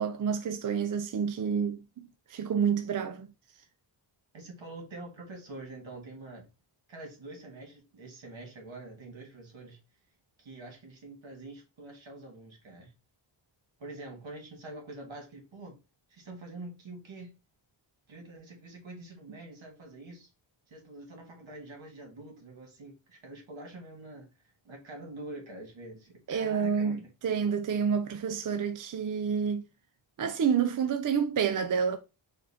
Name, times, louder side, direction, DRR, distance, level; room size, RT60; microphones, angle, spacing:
voice 1, 0.0-3.3 26.3-29.6 30.2-32.0, right 7 dB, 45° right, 0.4 m, -29 dB
voice 2, 4.3-6.5 6.9-9.8 10.4-12.9 13.8-15.8 16.1-17.3 18.1-20.3 20.7-24.3 24.6-27.1, right 2 dB, 70° right, 1.9 m, -45 dB
4.4 x 2.5 x 4.2 m
wide cardioid pair, 140°, 47 cm